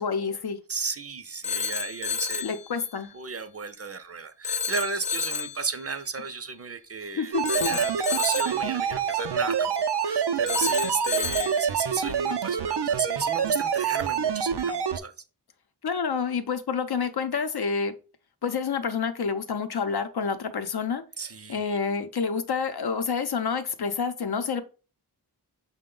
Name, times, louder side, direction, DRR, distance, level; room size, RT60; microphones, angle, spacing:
voice 1, 0.0-0.6 2.4-3.1 7.2-7.8 15.8-17.9 18.4-21.0 21.5-24.6, left 5 dB, 70° left, 0.6 m, -28 dB
voice 2, 0.7-2.4 3.1-9.7 10.0-15.1 21.2-21.8, right 4 dB, 40° right, 0.5 m, -34 dB
Telephone, 1.4-2.6 4.4-5.6 7.4-8.6 10.5-11.6, left 6 dB, 15° left, 0.5 m, -30 dB
sound 1, 7.3-15.0, right 7 dB, 85° right, 0.5 m, -26 dB
5.8 x 2.2 x 3.7 m
wide cardioid pair, 40°, 40 cm